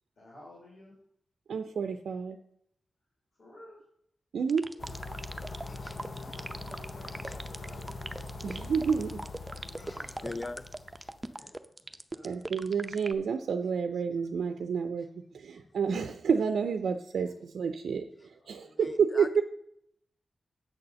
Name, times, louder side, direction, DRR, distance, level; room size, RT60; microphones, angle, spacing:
voice 1, 0.2-0.9 3.3-3.9 4.7-4.8 5.3-7.9 9.4-10.4 11.1-11.6 12.1-12.4 18.3-18.9, left 1 dB, 85° left, 3.1 m, -55 dB
voice 2, 1.5-2.4 4.3-4.7 8.4-9.3 12.2-19.4, right 6 dB, 90° right, 0.4 m, -30 dB
sound 1, 4.5-13.1, right 2 dB, 25° right, 0.5 m, -40 dB
sound 2, 4.8-11.2, left 3 dB, 60° left, 0.7 m, -42 dB
voice 3, 5.1-6.8 7.1-7.4 8.3-8.6 9.2-11.1 15.5-15.6 18.8-19.4, left 2 dB, 30° left, 0.4 m, -45 dB
8.2 x 4.1 x 6.7 m
cardioid pair, 60°, 0 cm